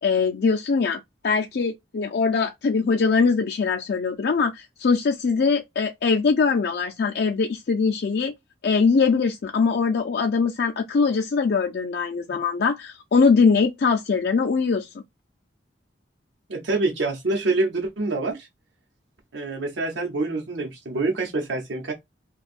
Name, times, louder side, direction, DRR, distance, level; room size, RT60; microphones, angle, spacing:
voice 1, 0.0-8.3 8.6-14.9, left 5 dB, 60° left, 0.4 m, -22 dB
voice 2, 16.5-18.5 19.3-21.9, right 3 dB, 90° right, 0.8 m, -26 dB
2.6 x 2.3 x 4.0 m
head